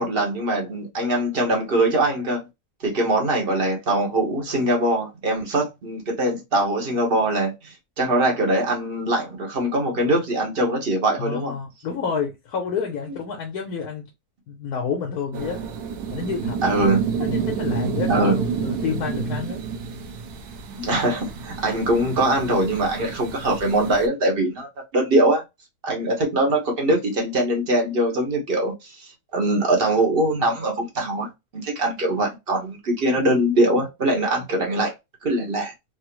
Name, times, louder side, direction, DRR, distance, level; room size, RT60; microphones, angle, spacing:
voice 1, 0.0-2.4 2.8-11.5 16.6-17.0 18.1-18.3 20.7-24.7 24.9-25.4 25.8-31.3 31.5-34.9 35.2-35.7, right 1 dB, 45° right, 1.0 m, -22 dB
voice 2, 11.2-14.0 14.5-15.6 16.1-16.6 17.2-19.6, left 6 dB, 75° left, 1.2 m, -29 dB
sound 1, 15.3-24.1, right 6 dB, 80° right, 1.1 m, -29 dB
3.5 x 2.0 x 2.9 m
omnidirectional pair, 1.7 m